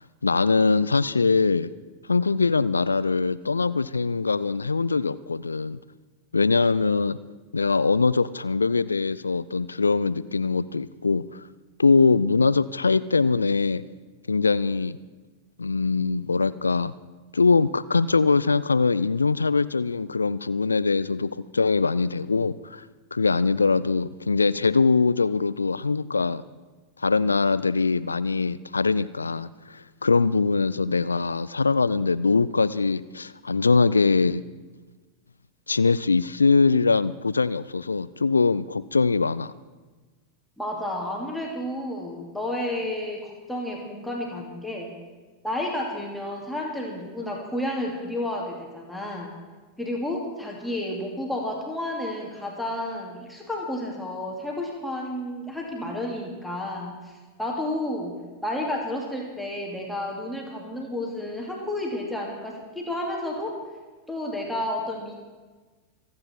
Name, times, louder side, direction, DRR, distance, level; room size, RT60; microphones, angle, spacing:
voice 1, 0.0-1.7 2.1-5.8 6.3-7.2 7.5-11.4 11.8-13.8 14.3-15.0 15.6-16.9 17.3-22.8 23.1-26.4 27.0-34.4 35.7-39.5, left 4 dB, 75° left, 17 dB, 0.4 m, -22 dB
voice 2, 40.6-45.0 45.4-49.3 49.8-58.2 58.4-63.6 64.1-65.2, left 1 dB, ahead, -1 dB, 2.6 m, -31 dB
26.0 x 9.5 x 4.4 m, 1.3 s
figure-of-eight pair, 90°, 0 cm